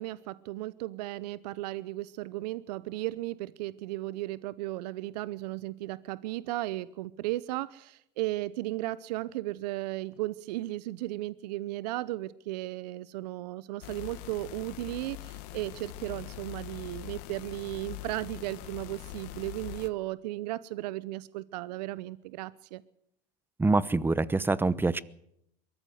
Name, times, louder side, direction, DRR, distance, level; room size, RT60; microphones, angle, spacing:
voice 1, 0.0-22.8, right 17 dB, 75° right, 18 dB, 0.8 m, -35 dB
sound 1, 13.8-19.9, left 16 dB, 70° left, 1.6 m, -43 dB
voice 2, 23.6-25.0, right 3 dB, 10° right, 19 dB, 0.9 m, -25 dB
23.0 x 14.5 x 8.0 m, 0.76 s
supercardioid pair, 105°, 21 cm